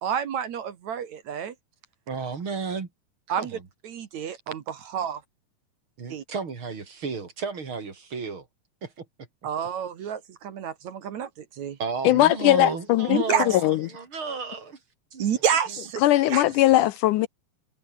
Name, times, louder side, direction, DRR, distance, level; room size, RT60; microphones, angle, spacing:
voice 1, 0.0-1.5 3.3-5.2 6.1-6.2 9.4-11.8 13.1-13.5 15.2-16.0 16.3-16.5, right 8 dB, 60° right, 2.7 m, -29 dB
voice 2, 2.1-2.9 3.4-3.6 6.0-8.5 8.8-9.1 11.8-14.8 15.1-15.4, right 5 dB, 40° right, 3.5 m, -33 dB
voice 3, 12.0-13.2 13.6-13.8 16.0-17.3, left 15 dB, 75° left, 2.1 m, -19 dB
omnidirectional pair, 3.9 m